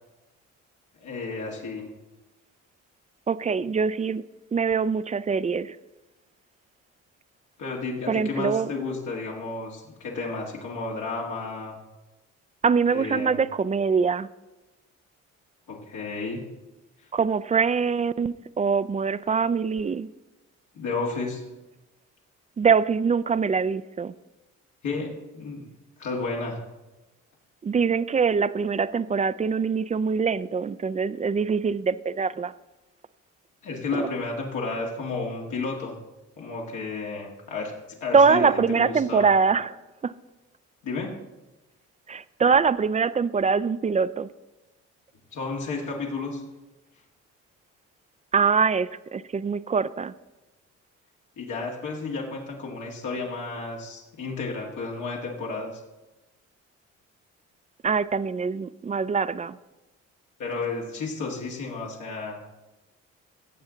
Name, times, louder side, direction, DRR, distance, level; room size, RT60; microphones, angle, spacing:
voice 1, 1.0-1.9 7.6-11.8 12.9-13.4 15.7-16.4 20.7-21.5 24.8-25.6 26.0-26.6 33.6-36.0 36.4-37.7 38.0-39.3 40.8-41.1 45.3-46.4 51.4-55.8 60.4-62.4, left 3 dB, 80° left, -2 dB, 2.0 m, -32 dB
voice 2, 3.3-4.2 4.5-5.8 8.1-8.7 12.6-14.3 17.1-20.1 22.6-24.1 27.6-32.5 34.0-34.1 38.1-39.8 40.0-40.1 42.1-44.3 48.3-50.1 57.8-59.6, right 5 dB, 25° right, 14 dB, 0.4 m, -23 dB
16.0 x 7.1 x 3.9 m, 1.1 s
cardioid pair, 90°, 30 cm